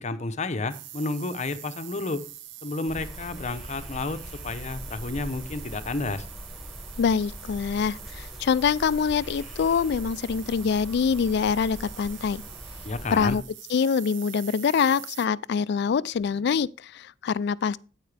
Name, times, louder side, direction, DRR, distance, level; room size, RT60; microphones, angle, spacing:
voice 1, 0.0-2.2 2.6-6.3 12.8-13.4, left 3 dB, 40° left, 0.7 m, -31 dB
sound 1, 0.7-15.3, right 12 dB, 85° right, 0.7 m, -44 dB
sound 2, 2.9-13.4, equal, ahead, 1.8 m, -41 dB
voice 2, 7.0-12.4 13.1-13.4 13.7-17.8, left 6 dB, 60° left, 0.3 m, -25 dB
9.0 x 8.6 x 3.3 m
head